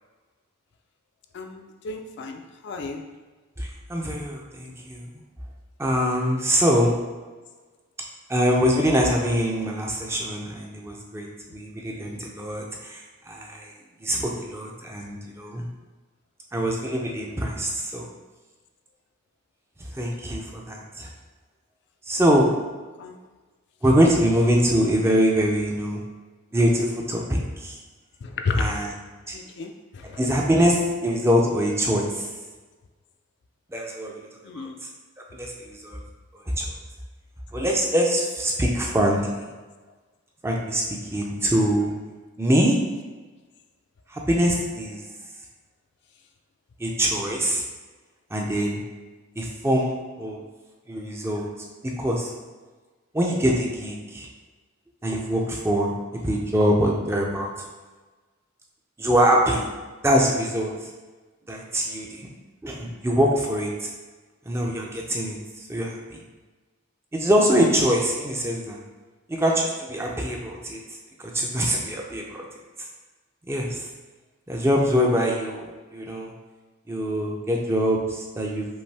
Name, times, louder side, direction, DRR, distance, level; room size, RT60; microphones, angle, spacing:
voice 1, 1.3-3.0 23.0-23.2 28.2-28.8 29.3-30.2 34.4-34.8, left 3 dB, 50° left, 4 dB, 0.3 m, -31 dB
voice 2, 3.6-5.0 5.8-6.9 8.3-13.7 14.0-15.6 16.5-18.1 19.9-21.1 22.1-22.5 23.8-26.0 26.5-27.8 28.6-28.9 29.3-29.4 30.2-32.3 33.7-34.2 34.5-34.7 35.3-36.0 36.6-36.7 37.5-39.2 40.4-41.9 42.4-42.8 44.1-45.0 46.8-47.6 48.3-48.8 49.4-50.4 50.9-51.5 51.8-52.3 53.1-54.3 55.0-57.5 59.0-59.7 60.0-60.7 61.5-62.3 62.6-63.9 64.5-65.4 65.7-66.0 67.1-68.8 69.3-70.8 71.3-72.4 73.5-73.8 74.5-76.3 76.9-78.7, equal, 10° right, -1 dB, 0.4 m, -23 dB
5.3 x 2.6 x 3.3 m, 1.3 s
head